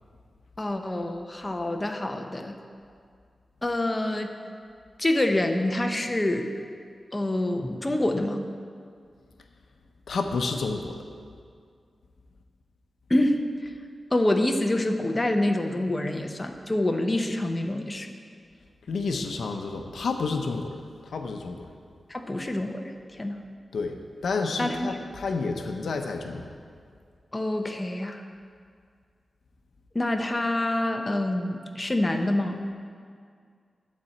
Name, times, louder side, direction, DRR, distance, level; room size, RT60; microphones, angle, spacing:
voice 1, 0.6-2.6 3.6-4.3 5.0-6.5 7.1-8.4 13.1-13.7 14.1-18.1 22.1-23.4 24.6-25.0 27.3-28.2 29.9-32.6, left 1 dB, 25° left, 4 dB, 0.8 m, -26 dB
voice 2, 10.1-11.0 18.9-20.8 21.1-21.7 23.7-23.9 24.2-26.5, left 4 dB, 85° left, 4 dB, 0.7 m, -30 dB
12.0 x 4.3 x 7.7 m, 2.2 s
wide cardioid pair, 75°, 0 cm